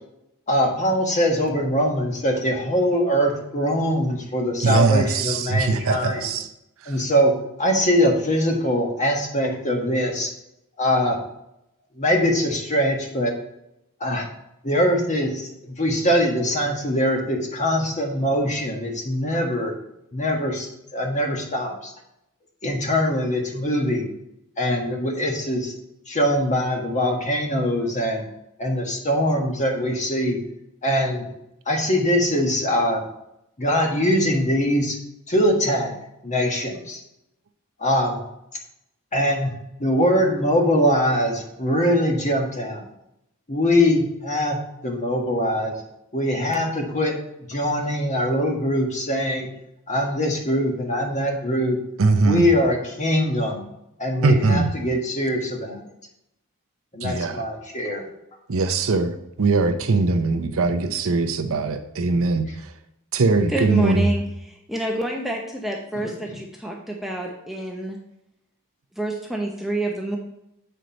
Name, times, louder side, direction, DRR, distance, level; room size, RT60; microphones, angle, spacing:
voice 1, 0.5-6.3 6.9-7.3 7.6-10.3 10.8-11.2 12.0-13.3 14.0-14.3 14.6-19.7 20.1-21.9 22.6-24.1 24.6-25.7 26.1-28.2 28.6-30.5 30.8-31.2 31.7-33.0 33.6-35.0 35.3-35.9 36.2-37.0 37.8-38.2 39.1-39.5 39.8-42.8 43.5-44.6 44.8-45.7 46.1-47.2 47.5-49.6 49.9-51.8 52.2-53.7 54.0-55.8 56.9-58.0 66.0-66.4, equal, 35° left, 1 dB, 1.5 m, -22 dB
voice 2, 4.6-6.5 6.8-6.9 52.0-52.5 54.2-54.7 57.0-57.4 58.5-62.7 63.1-64.1, right 3 dB, 65° right, 7 dB, 0.6 m, -21 dB
voice 3, 63.5-68.0 69.0-70.2, right 1 dB, ahead, 0 dB, 0.7 m, -27 dB
7.8 x 4.4 x 5.1 m, 0.81 s
head